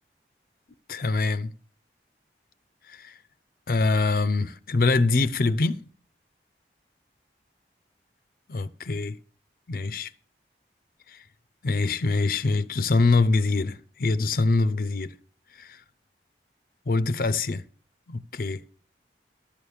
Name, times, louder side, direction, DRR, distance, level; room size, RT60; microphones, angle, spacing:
voice 1, 0.9-1.5 2.9-3.1 3.7-5.8 8.5-9.2 9.7-10.1 11.1-11.2 11.6-15.1 15.6-15.8 16.9-17.6 18.1-18.6, left 3 dB, 55° left, 0.5 m, -24 dB
11.5 x 7.1 x 6.5 m
head